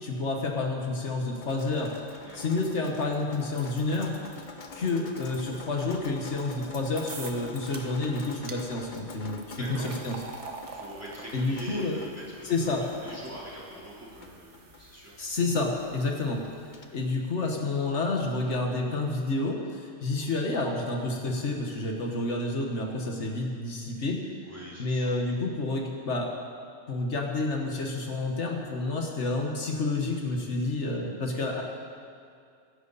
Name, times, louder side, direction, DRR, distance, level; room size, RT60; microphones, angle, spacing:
voice 1, 0.0-2.0 2.3-4.1 4.7-10.2 11.3-12.0 12.4-12.9 15.2-16.4 16.9-24.2 24.8-26.3 26.9-31.6, left 2 dB, 80° left, 1 dB, 1.9 m, -29 dB
Drip, 1.4-16.8, left 4 dB, 45° left, 1.1 m, -46 dB
sound 1, 7.1-7.4 7.7-8.1 8.5-8.6 9.3-16.4, right 4 dB, 90° right, 1.6 m, -47 dB
voice 2, 9.6-10.0 10.6-12.7 13.0-15.2 20.1-20.4 24.4-25.2, right 1 dB, 10° right, -8 dB, 3.8 m, -43 dB
22.5 x 11.0 x 4.2 m, 2.3 s
omnidirectional pair, 1.2 m